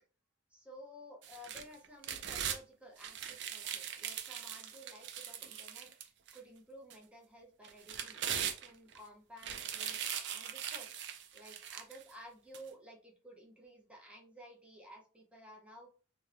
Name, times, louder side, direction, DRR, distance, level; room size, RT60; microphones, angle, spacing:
voice 1, 0.5-11.0 11.3-15.9, equal, 5° right, 0 dB, 0.5 m, -54 dB
sound 1, 1.2-2.6 3.0-6.4 6.9-7.0 7.6-9.0 9.4-12.0 12.5-12.6, right 9 dB, 65° right, 0.4 m, -40 dB
2.7 x 2.0 x 2.4 m, 0.37 s
head